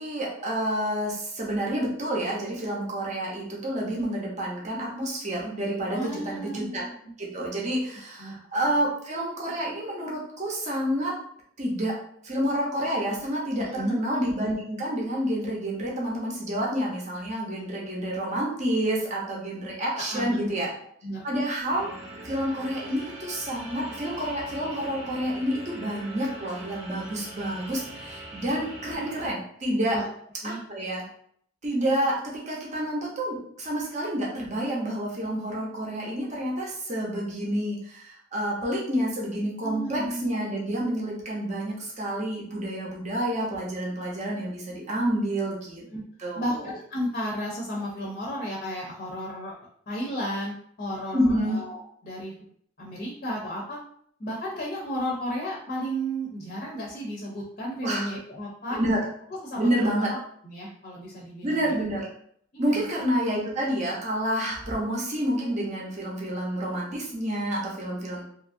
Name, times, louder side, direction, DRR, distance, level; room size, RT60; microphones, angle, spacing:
voice 1, 0.0-6.9 7.2-11.1 11.6-11.9 12.2-20.7 21.2-21.9 22.2-30.0 30.7-31.0 31.6-45.8 46.2-46.7 51.1-51.6 57.8-58.1 58.7-59.0 59.6-60.1 61.4-62.1 62.6-68.2, right 1 dB, 35° right, -3 dB, 0.7 m, -29 dB
voice 2, 5.9-7.1 8.2-8.7 13.6-14.0 19.9-20.6 21.0-21.2 29.9-30.1 30.4-30.6 39.6-40.3 45.9-46.0 46.4-49.6 49.9-52.3 52.8-53.8 54.2-58.8 59.4-60.2 60.4-61.8 62.5-62.9, equal, 40° left, -3 dB, 0.6 m, -33 dB
sound 1, 21.7-29.3, right 1 dB, 75° right, 1.0 m, -42 dB
2.8 x 2.5 x 2.5 m, 0.65 s
head